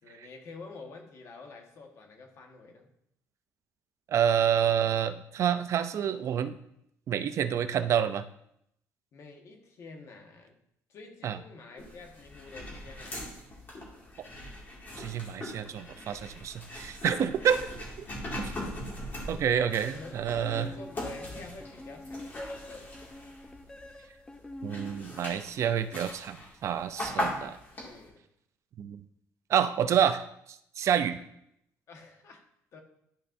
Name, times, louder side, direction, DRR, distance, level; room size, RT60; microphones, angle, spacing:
voice 1, 0.0-2.9 9.1-10.5 10.9-13.2 18.0-18.4 18.9-19.4 19.9-20.2 20.5-22.9 27.7-28.2 31.0-31.1 31.9-32.4 32.7-32.8, left 3 dB, 55° left, 3 dB, 1.3 m, -48 dB
voice 2, 4.1-6.6 7.1-8.3 11.2-11.4 15.0-17.7 19.3-20.7 24.6-27.6 28.8-29.0 29.5-31.2, right 8 dB, 55° right, 11 dB, 0.4 m, -28 dB
sound 1, 11.8-23.9 24.3-28.1, left 1 dB, 30° left, 2.1 m, -40 dB
sound 2, 19.7-25.5, left 1 dB, 10° left, 0.4 m, -45 dB
12.0 x 5.3 x 2.6 m, 0.75 s
cardioid pair, 140°, 6 cm